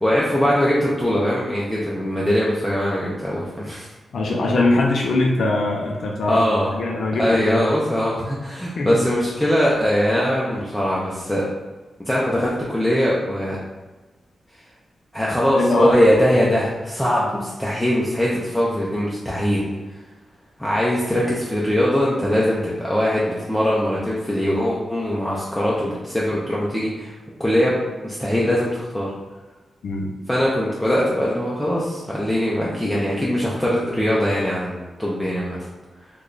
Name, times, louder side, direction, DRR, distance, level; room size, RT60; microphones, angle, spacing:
voice 1, 0.0-3.9 6.3-6.7 7.2-11.5 12.1-13.6 15.1-19.6 20.6-27.1 27.4-27.7 28.0-29.1 30.3-35.6, equal, 5° left, -6 dB, 0.4 m, -21 dB
voice 2, 4.1-7.7 8.8-9.0 15.6-15.9 29.8-30.1, left 2 dB, 70° left, -2 dB, 0.5 m, -21 dB
3.1 x 2.2 x 3.7 m, 1.2 s
wide cardioid pair, 175°, 0 cm